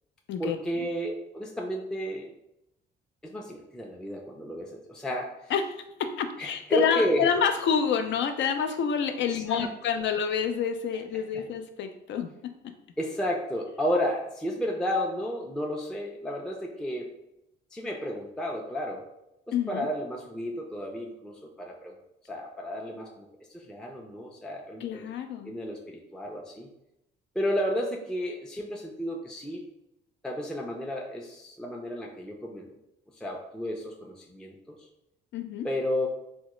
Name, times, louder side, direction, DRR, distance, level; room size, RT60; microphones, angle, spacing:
voice 1, 0.4-2.3 3.2-5.5 6.4-7.3 9.3-9.7 11.1-11.5 13.0-17.1 17.7-19.0 19.7-22.0 22.2-23.3 23.5-25.0 25.5-26.7 27.4-29.6 30.2-32.7 33.2-34.8 35.6-36.1, equal, 5° left, -1 dB, 0.4 m, -32 dB
voice 2, 5.5-12.7 19.5-19.9 24.8-25.5 35.3-35.7, left 7 dB, 70° left, 7 dB, 0.4 m, -28 dB
3.5 x 2.1 x 3.0 m, 0.85 s
cardioid pair, 90°, 20 cm